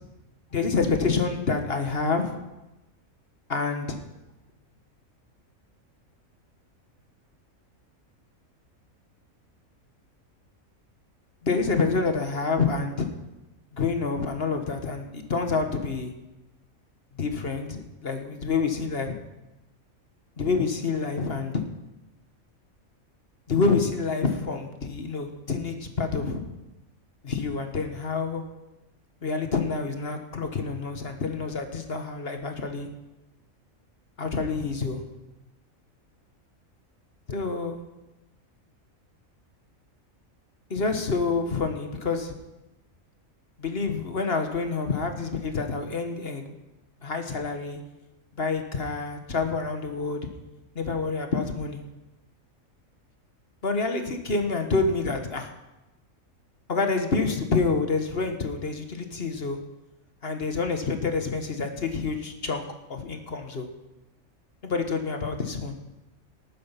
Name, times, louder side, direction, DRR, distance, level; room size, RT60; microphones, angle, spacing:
voice 1, 0.5-2.3 3.5-4.0 11.4-13.1 13.7-16.1 17.2-19.1 20.4-21.6 23.5-26.4 27.2-28.4 29.2-32.9 34.2-35.0 37.3-37.8 40.7-42.3 43.6-46.5 47.0-47.8 48.4-50.3 50.7-51.8 53.6-55.5 56.7-59.6 60.2-62.6 62.9-63.7 64.6-65.8, left 4 dB, 45° left, 6 dB, 1.6 m, -27 dB
19.0 x 9.5 x 5.8 m, 1.0 s
omnidirectional pair, 1.4 m